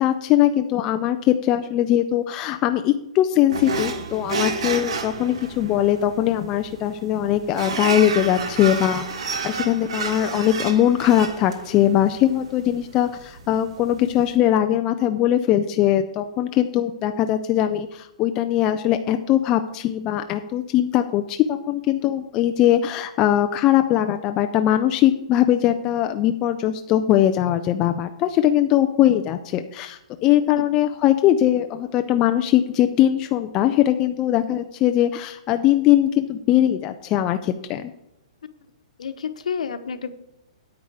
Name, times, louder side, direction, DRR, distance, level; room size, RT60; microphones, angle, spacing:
voice 1, 0.0-37.9, left 12 dB, 15° left, 8 dB, 0.3 m, -21 dB
sound 1, 3.5-14.3, right 4 dB, 55° right, 1.4 m, -31 dB
voice 2, 39.0-40.1, left 6 dB, 85° left, 11 dB, 1.0 m, -29 dB
9.5 x 8.4 x 4.8 m, 0.85 s
hypercardioid pair, 175°, 4 cm